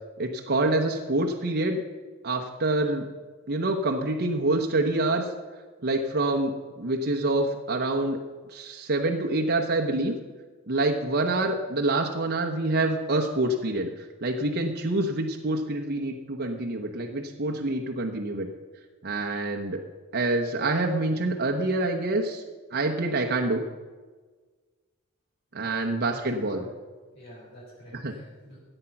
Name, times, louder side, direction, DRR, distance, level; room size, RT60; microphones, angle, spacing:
voice 1, 0.2-1.8 2.2-3.1 3.5-5.3 5.8-8.2 8.5-10.1 10.7-13.9 14.2-18.5 19.0-19.8 20.1-22.4 22.7-23.6 25.5-26.6 28.0-28.1, right 2 dB, 50° right, 1 dB, 1.0 m, -26 dB
voice 2, 25.6-26.7 27.1-28.6, equal, 55° left, -8 dB, 4.1 m, -48 dB
14.0 x 9.0 x 5.9 m, 1.4 s
head